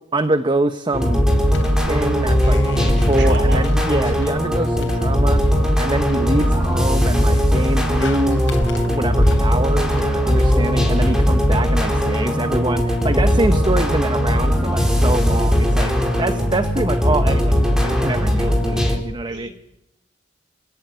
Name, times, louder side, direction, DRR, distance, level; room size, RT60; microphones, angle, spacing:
voice 1, 0.1-1.2 1.9-5.4 5.7-8.4 8.9-19.5, right 2 dB, 25° right, 10 dB, 1.1 m, -24 dB
sound 1, 0.9-19.0, equal, 5° right, 4.4 m, -18 dB
sound 2, 1.5-11.3, left 1 dB, 75° left, 3.9 m, -31 dB
voice 2, 3.0-3.6 10.3-10.4 19.3-19.5, right 3 dB, 70° right, 8 dB, 4.4 m, -31 dB
26.5 x 17.0 x 9.5 m, 0.85 s
head